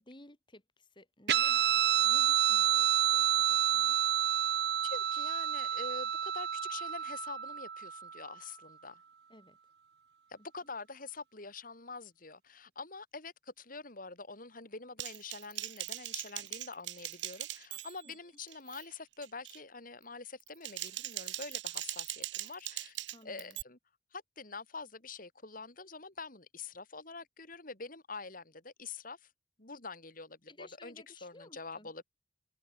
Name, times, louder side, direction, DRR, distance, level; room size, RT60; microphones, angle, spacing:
voice 1, 0.0-4.0 9.3-9.6 18.1-18.2 23.1-23.6 30.5-31.9, left 1 dB, 25° left, 5.2 m, -56 dB
Guitar, 1.3-8.2, right 10 dB, 65° right, 0.9 m, -29 dB
voice 2, 4.8-9.0 10.3-23.0 23.2-23.8 24.1-29.3 29.6-32.0, left 4 dB, 50° left, 5.5 m, -46 dB
Typing, 15.0-18.1 18.5-18.8 19.2-19.6 20.4-23.6, right 14 dB, 90° right, 1.1 m, -40 dB
open air
head